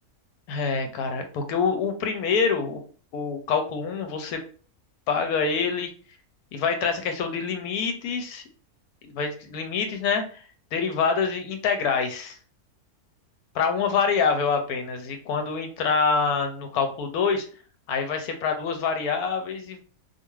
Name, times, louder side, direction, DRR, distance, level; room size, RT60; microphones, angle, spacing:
voice 1, 0.5-2.8 3.1-4.4 5.1-5.9 6.5-8.4 9.0-10.4 10.7-12.4 13.5-17.5 17.9-19.8, left 5 dB, 80° left, 6 dB, 1.1 m, -26 dB
2.5 x 2.4 x 3.0 m, 0.40 s
omnidirectional pair, 1.6 m